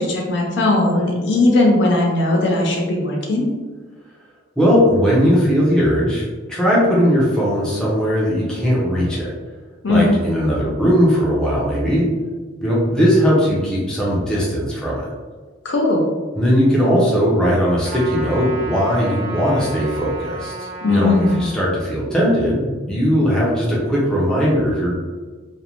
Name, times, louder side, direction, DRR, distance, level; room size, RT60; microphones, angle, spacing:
voice 1, 0.0-3.5 9.8-10.2 15.6-16.0 20.8-21.4, left 2 dB, 60° left, -1 dB, 0.5 m, -18 dB
voice 2, 4.6-9.3 9.9-12.0 12.6-15.1 16.4-24.9, equal, 5° left, -7 dB, 0.5 m, -18 dB
Trumpet, 17.8-21.5, right 2 dB, 50° right, 0.5 m, -32 dB
2.5 x 2.1 x 2.9 m, 1.4 s
head